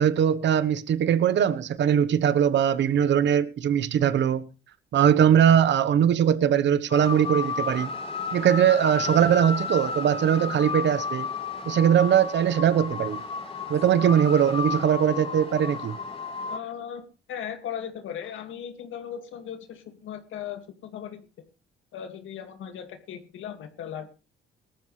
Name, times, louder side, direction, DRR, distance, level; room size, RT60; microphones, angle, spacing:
voice 1, 0.0-4.5 4.9-7.9 8.3-11.3 11.6-13.2 13.7-16.0, right 9 dB, 65° right, 1.1 m, -21 dB
sound 1, 6.9-16.6, left 4 dB, 30° left, 3.6 m, -32 dB
voice 2, 16.5-17.0 17.3-21.5 21.9-24.1, left 9 dB, 80° left, 2.1 m, -37 dB
19.0 x 13.0 x 3.3 m
cardioid pair, 90°, 20 cm